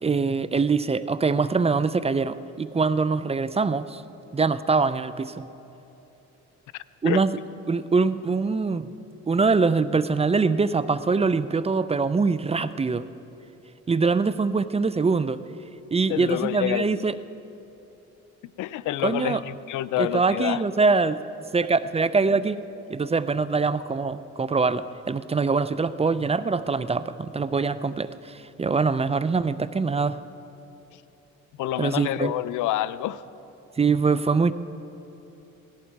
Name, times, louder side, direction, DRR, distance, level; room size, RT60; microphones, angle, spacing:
voice 1, 0.0-4.0 4.3-5.5 7.0-7.3 7.7-8.9 9.3-13.1 13.9-15.4 15.9-17.2 19.0-19.4 20.0-21.2 21.5-22.6 22.9-30.2 31.8-32.3 33.8-34.5, right 4 dB, 20° right, 14 dB, 0.5 m, -23 dB
voice 2, 16.1-16.9 18.6-20.6 31.6-33.2, left 14 dB, 85° left, 16 dB, 0.5 m, -27 dB
17.5 x 14.5 x 4.7 m, 2.8 s
cardioid pair, 90°, 30 cm